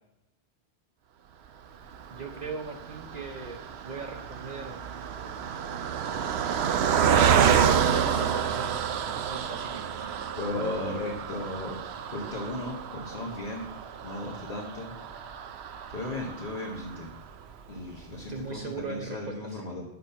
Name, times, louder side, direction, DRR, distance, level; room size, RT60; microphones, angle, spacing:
Car passing by, 1.9-17.4 17.9-18.0 18.2-18.4, right 8 dB, 80° right, 0.9 m, -29 dB
voice 1, 2.1-4.8 6.7-7.5 7.8-9.9 18.3-19.6, right 4 dB, 45° right, 3 dB, 0.8 m, -39 dB
voice 2, 10.3-11.8 12.1-13.7 14.0-14.9 15.9-17.1 17.7-19.8, left 2 dB, 50° left, -3 dB, 1.4 m, -35 dB
9.3 x 6.0 x 5.7 m, 0.94 s
omnidirectional pair, 1.1 m